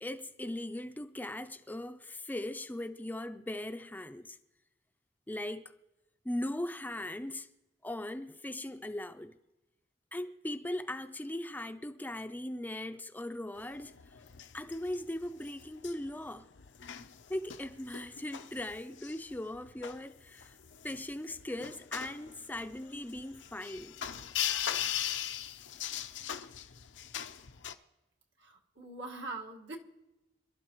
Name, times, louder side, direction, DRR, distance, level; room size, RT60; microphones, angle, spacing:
voice 1, 0.0-4.4 5.3-5.7 6.2-7.5 7.8-9.4 10.1-14.0 14.5-16.5 17.3-20.6 20.8-24.0, left 1 dB, 10° left, 0.4 m, -39 dB
sound 1, 13.6-27.7, left 10 dB, 85° left, 0.7 m, -40 dB
voice 2, 28.4-29.8, right 2 dB, 80° right, 1.7 m, -43 dB
26.5 x 12.0 x 3.0 m
head